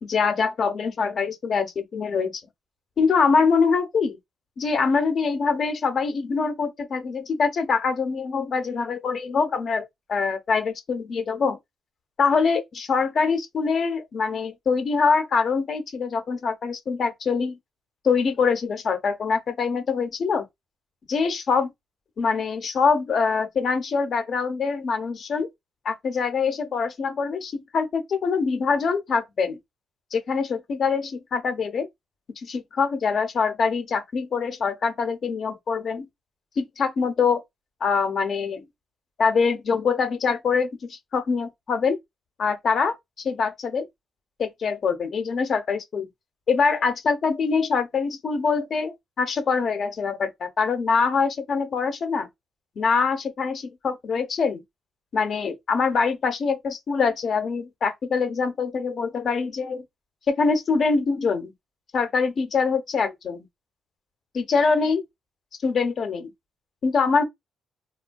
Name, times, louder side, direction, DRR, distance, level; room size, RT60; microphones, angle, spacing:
voice 1, 0.0-2.4 3.0-4.2 4.6-11.6 12.2-17.6 18.0-20.5 21.1-21.7 22.2-25.5 25.8-29.6 30.1-31.9 32.4-36.1 36.6-37.4 37.8-38.6 39.2-42.0 42.4-43.9 44.4-46.1 46.5-52.3 52.8-54.6 55.1-59.8 60.3-61.5 61.9-63.4 64.3-65.0 65.6-66.3 66.8-67.2, left 5 dB, 55° left, 0.7 m, -24 dB
3.4 x 2.1 x 2.2 m
cardioid pair, 90°, 0 cm